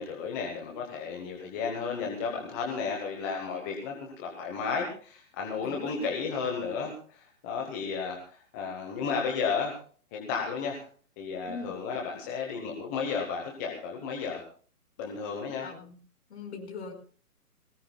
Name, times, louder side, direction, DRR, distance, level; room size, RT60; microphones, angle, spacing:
voice 1, 0.0-9.7 10.1-10.8 11.2-14.4 15.0-15.7, left 5 dB, 10° left, 1 dB, 1.0 m, -33 dB
voice 2, 5.6-6.1 11.5-11.7 15.6-16.0 16.3-16.9, left 4 dB, 45° left, 3 dB, 5.0 m, -41 dB
22.0 x 19.0 x 2.3 m, 0.42 s
hypercardioid pair, 165°, 46 cm